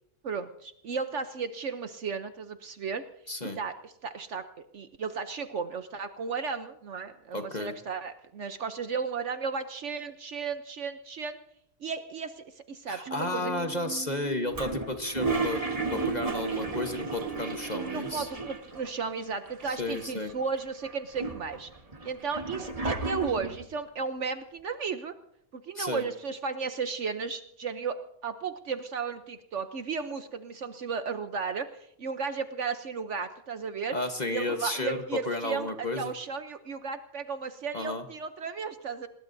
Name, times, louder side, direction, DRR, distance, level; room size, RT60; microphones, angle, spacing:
voice 1, 0.2-3.0 3.4-4.4 4.7-11.4 11.8-13.5 17.9-21.7 22.0-25.2 25.5-34.0 34.3-39.1, right 5 dB, 55° right, 9 dB, 1.0 m, -34 dB
voice 2, 3.3-3.6 7.3-7.7 12.9-15.6 15.9-18.3 19.7-20.3 25.7-26.1 33.9-36.1 37.7-38.0, left 2 dB, 30° left, 6 dB, 1.1 m, -33 dB
sound 1, 13.1-18.1, right 6 dB, 80° right, 2.6 m, -42 dB
Toilet flush, 14.5-18.9 19.2-19.3 19.5-20.3 20.8-23.6, right 3 dB, 25° right, 1.3 m, -33 dB
26.5 x 19.5 x 2.7 m, 0.74 s
omnidirectional pair, 1.6 m